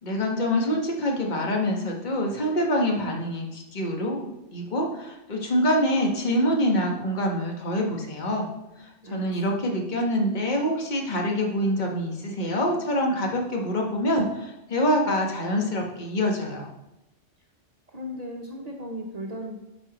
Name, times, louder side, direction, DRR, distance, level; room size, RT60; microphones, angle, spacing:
voice 1, 0.0-8.5 8.8-16.7, equal, 40° left, 1 dB, 1.3 m, -25 dB
voice 2, 8.7-9.3 17.9-19.6, equal, 40° right, -1 dB, 0.8 m, -36 dB
9.7 x 6.5 x 3.0 m, 0.90 s
omnidirectional pair, 1.2 m